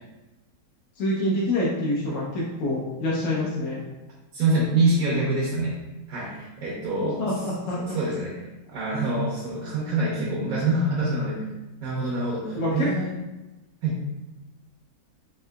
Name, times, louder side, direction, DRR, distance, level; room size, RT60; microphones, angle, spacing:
voice 1, 1.0-3.8 7.2-8.0 12.5-12.9, left 1 dB, 70° left, -5 dB, 0.9 m, -26 dB
voice 2, 4.3-5.7 6.1-7.3 7.8-8.4 8.7-11.4 11.8-13.1 13.8-14.0, right 2 dB, 70° right, -4 dB, 1.1 m, -25 dB
3.6 x 2.6 x 2.2 m, 1.1 s
omnidirectional pair, 1.6 m